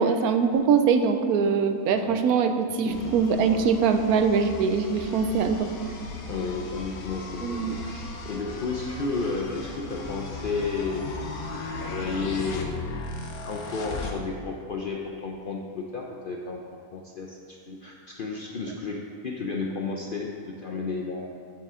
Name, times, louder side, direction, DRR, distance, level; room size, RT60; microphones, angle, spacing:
voice 1, 0.0-5.7 7.4-7.7, right 6 dB, 85° right, 8 dB, 1.1 m, -23 dB
voice 2, 2.8-3.2 6.3-11.3 11.8-12.8 13.4-16.6 16.9-21.3, left 4 dB, 65° left, 0 dB, 0.5 m, -32 dB
sound 1, 2.9-14.1, left 2 dB, 85° left, 1.3 m, -37 dB
7.9 x 7.5 x 3.7 m, 2.5 s
omnidirectional pair, 1.5 m